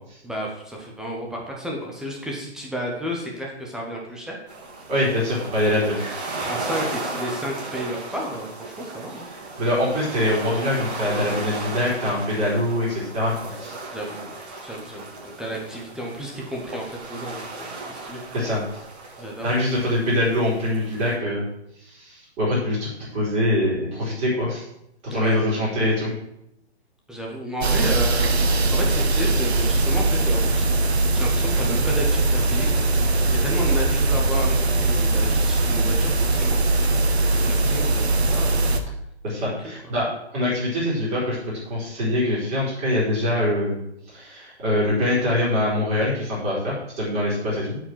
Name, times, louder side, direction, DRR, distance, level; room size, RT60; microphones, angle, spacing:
voice 1, 0.2-4.4 5.7-6.2 6.5-9.2 11.5-11.6 13.9-14.3 14.6-18.2 19.2-19.5 25.1-25.4 27.1-30.6 31.1-32.8 33.4-36.6 37.3-38.9 39.6-39.7, equal, ahead, -1 dB, 0.5 m, -32 dB
sound 1, 4.5-21.2, right 2 dB, 35° right, 2.6 m, -35 dB
voice 2, 4.9-6.1 9.3-13.3 13.6-13.8 18.3-18.6 19.4-21.4 21.9-24.7 25.1-26.1 39.2-41.4 41.7-43.8 44.1-47.8, left 1 dB, 20° right, -6 dB, 3.8 m, -24 dB
sound 2, 27.6-38.8, right 2 dB, 70° right, 1.3 m, -21 dB
8.2 x 5.0 x 7.6 m, 0.80 s
hypercardioid pair, 145°, 33 cm